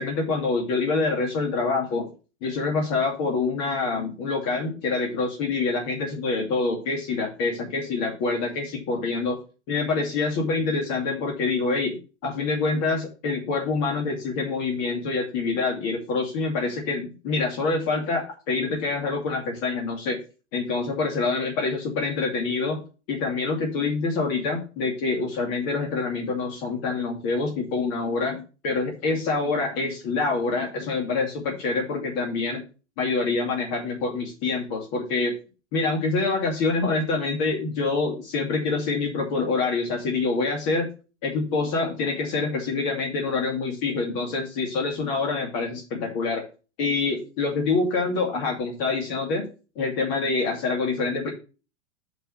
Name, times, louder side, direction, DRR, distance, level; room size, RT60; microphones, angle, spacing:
voice 1, 0.0-2.1 2.4-9.4 9.7-20.2 20.5-22.8 23.1-32.6 33.0-35.3 35.7-40.9 41.2-46.4 46.8-49.5 49.8-51.3, left 3 dB, 45° left, 0 dB, 2.5 m, -26 dB
5.6 x 5.6 x 6.6 m, 0.34 s
hypercardioid pair, 110°, 35 cm